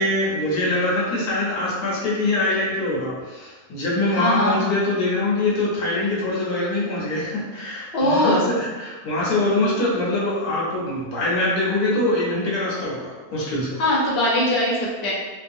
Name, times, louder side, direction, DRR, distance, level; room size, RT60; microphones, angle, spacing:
voice 1, 0.0-13.8, left 2 dB, 70° left, -5 dB, 1.2 m, -23 dB
voice 2, 4.1-4.6 7.9-8.5 13.8-15.1, left 1 dB, 50° left, -6 dB, 0.7 m, -21 dB
3.1 x 2.0 x 2.5 m, 1.3 s
omnidirectional pair, 1.7 m